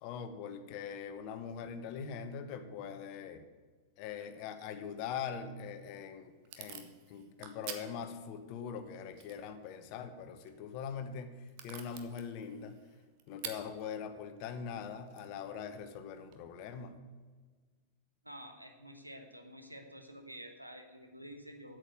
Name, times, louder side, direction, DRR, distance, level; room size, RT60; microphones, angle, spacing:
voice 1, 0.0-3.4 4.0-12.8 13.3-17.0, left 7 dB, 45° left, 9 dB, 1.1 m, -42 dB
Packing tape duct tape / Tearing, 5.6-16.4, right 9 dB, 45° right, 1.1 m, -52 dB
voice 2, 18.2-21.8, equal, 90° right, 4 dB, 1.3 m, -49 dB
8.4 x 7.7 x 8.0 m, 1.4 s
figure-of-eight pair, 90°, 0 cm